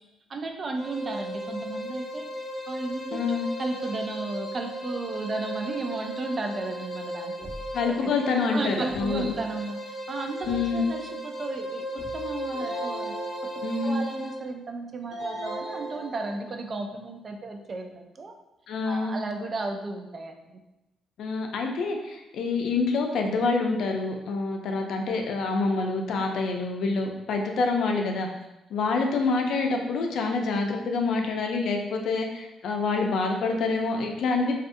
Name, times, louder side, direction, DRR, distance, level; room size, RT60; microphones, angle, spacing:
voice 1, 0.3-2.3 2.7-7.5 7.9-8.1 8.5-13.1 13.4-13.5 13.8-18.3 18.8-20.6, right 3 dB, 40° right, 4 dB, 0.3 m, -34 dB
sound 1, 0.8-14.4, equal, 40° left, 0.7 m, -36 dB
voice 2, 3.1-3.5 7.7-9.4 10.5-10.8 13.6-14.0 18.7-19.1 21.2-28.3 28.7-34.5, left 3 dB, 75° left, 2 dB, 0.4 m, -27 dB
sound 2, 7.4-8.0 8.9-9.5 10.4-11.0 12.0-12.6, equal, 10° left, 0.9 m, -45 dB
sound 3, 12.5-14.1 15.1-16.7, right 1 dB, 70° right, 0.9 m, -37 dB
2.5 x 2.3 x 2.5 m, 0.94 s
cardioid pair, 90°, 0 cm